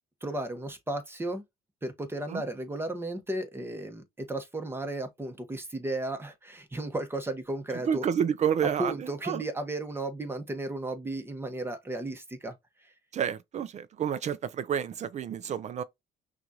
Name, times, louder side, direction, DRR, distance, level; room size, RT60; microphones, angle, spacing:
voice 1, 0.2-1.4 1.8-8.0 8.8-12.6 12.8-12.9, right 1 dB, 15° right, 1.1 m, -34 dB
voice 2, 7.8-9.0 9.2-9.4 13.1-15.8, right 8 dB, 45° right, 0.5 m, -29 dB
5.8 x 2.5 x 2.8 m
cardioid pair, 110°, 17 cm